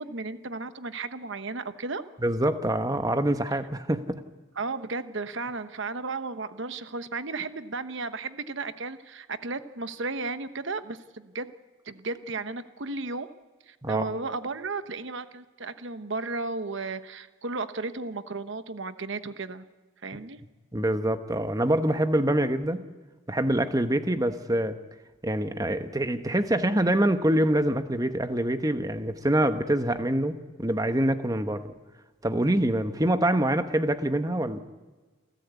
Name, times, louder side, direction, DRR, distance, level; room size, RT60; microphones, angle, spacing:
voice 1, 0.0-2.0 3.5-3.6 4.6-11.5 11.8-13.3 13.7-19.6 20.0-20.4, right 3 dB, 60° right, 11 dB, 1.0 m, -34 dB
voice 2, 2.2-4.2 13.8-14.1 20.7-22.9 23.3-24.8 25.2-31.6 32.2-34.6, right 1 dB, 15° right, 9 dB, 1.1 m, -25 dB
28.0 x 14.5 x 8.3 m, 1.3 s
head